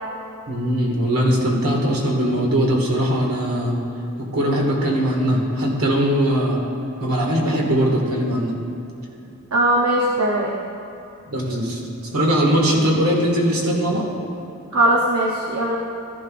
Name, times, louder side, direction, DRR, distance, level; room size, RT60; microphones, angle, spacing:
voice 1, 0.5-3.8 4.3-6.6 7.0-8.5 11.3-14.0, equal, 85° right, -1 dB, 2.0 m, -20 dB
voice 2, 9.5-10.5 14.7-15.8, right 1 dB, 70° right, -2 dB, 0.8 m, -19 dB
14.5 x 11.0 x 2.5 m, 2.9 s
head